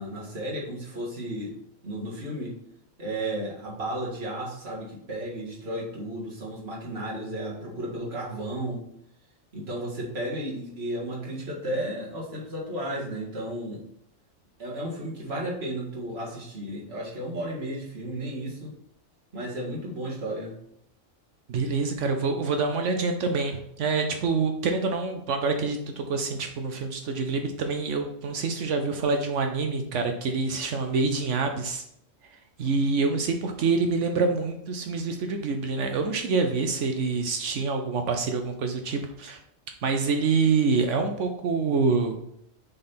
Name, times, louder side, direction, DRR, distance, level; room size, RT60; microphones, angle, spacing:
voice 1, 0.0-1.5 1.8-2.6 3.0-8.9 9.5-13.8 14.6-18.7 19.3-20.6, right 1 dB, 50° right, -4 dB, 2.0 m, -33 dB
voice 2, 21.5-31.8 32.6-39.4 39.8-42.2, right 4 dB, 70° right, 5 dB, 1.0 m, -26 dB
6.6 x 4.0 x 4.3 m, 0.74 s
omnidirectional pair, 1.3 m